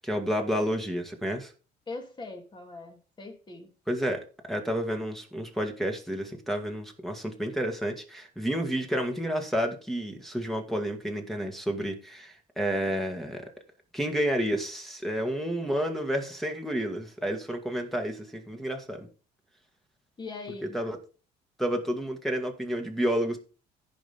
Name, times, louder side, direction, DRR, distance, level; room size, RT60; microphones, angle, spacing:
voice 1, 0.0-1.5 3.9-4.2 4.5-13.5 13.9-19.1 20.7-21.0 21.6-23.4, equal, ahead, 1.9 m, -30 dB
voice 2, 1.9-3.7 20.2-20.8, left 3 dB, 25° left, 2.6 m, -41 dB
15.0 x 5.3 x 3.6 m
cardioid pair, 110°, 17 cm